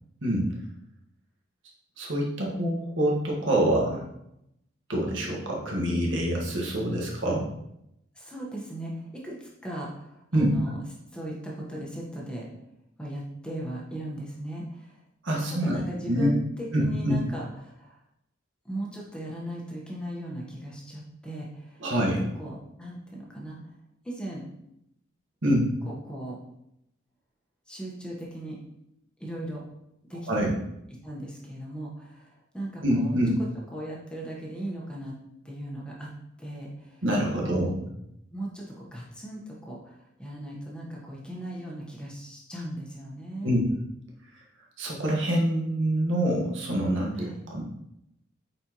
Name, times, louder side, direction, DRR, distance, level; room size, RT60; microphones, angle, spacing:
voice 1, 2.0-4.0 4.9-7.5 10.3-10.5 15.2-15.8 16.0-16.3 16.7-17.2 21.8-22.2 25.4-25.7 30.3-30.5 32.8-33.4 37.0-37.7 43.4-43.7 44.8-47.6, right 1 dB, 75° right, -2 dB, 1.6 m, -25 dB
voice 2, 8.1-10.8 11.1-12.5 13.0-15.0 15.5-18.0 18.6-22.1 22.4-23.6 24.0-24.5 25.5-25.6 25.9-26.4 27.7-28.6 29.2-29.6 30.0-30.4 31.0-33.2 33.7-35.1 35.4-36.1 36.4-37.0 37.3-37.7 38.3-43.6 47.1-47.4, right 1 dB, 5° left, -3 dB, 1.2 m, -38 dB
8.5 x 4.4 x 3.0 m, 0.81 s
head